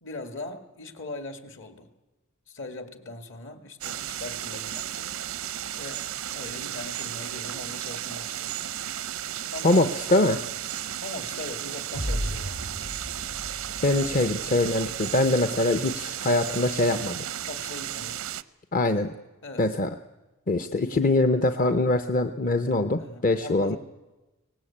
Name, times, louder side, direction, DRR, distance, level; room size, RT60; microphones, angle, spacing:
voice 1, 0.0-1.9 2.5-5.1 5.8-8.6 9.5-9.8 11.0-12.6 17.5-18.2 19.4-19.7 23.0-23.8, left 2 dB, 60° left, 7 dB, 2.2 m, -40 dB
sound 1, 3.8-18.4, right 11 dB, 90° right, 0.7 m, -34 dB
voice 2, 9.6-10.4 13.8-17.2 18.7-19.1 19.6-19.9 20.5-23.8, left 2 dB, 40° left, 9 dB, 0.8 m, -23 dB
sound 2, 11.9-15.2, equal, 85° left, 3.7 m, -35 dB
24.0 x 18.5 x 8.7 m, 1.1 s
head